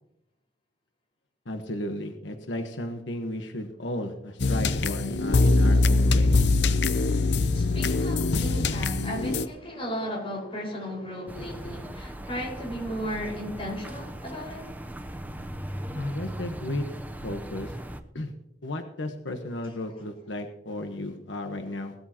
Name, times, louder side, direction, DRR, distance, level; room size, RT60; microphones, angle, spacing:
voice 1, 1.4-6.4 16.0-16.9 17.2-17.8 18.1-18.3 18.6-21.9, left 1 dB, 85° left, 1.3 m, -34 dB
sound 1, 4.4-9.5, left 3 dB, 65° left, 0.7 m, -22 dB
voice 2, 7.5-14.7, equal, 30° left, 5.2 m, -35 dB
sound 2, 11.3-18.0, right 1 dB, 10° right, 0.8 m, -38 dB
19.0 x 13.0 x 3.0 m
head